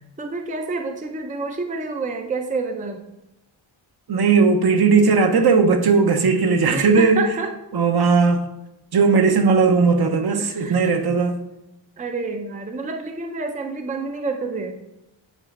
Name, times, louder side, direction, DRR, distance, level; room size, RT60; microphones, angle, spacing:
voice 1, 0.0-3.0 6.7-7.5 10.4-11.0 12.0-14.9, right 3 dB, 15° right, 4 dB, 0.5 m, -29 dB
voice 2, 4.1-7.2 7.7-8.4 8.9-11.4, right 4 dB, 55° right, 6 dB, 0.8 m, -17 dB
9.1 x 4.2 x 3.7 m, 0.92 s
wide cardioid pair, 140°, 47 cm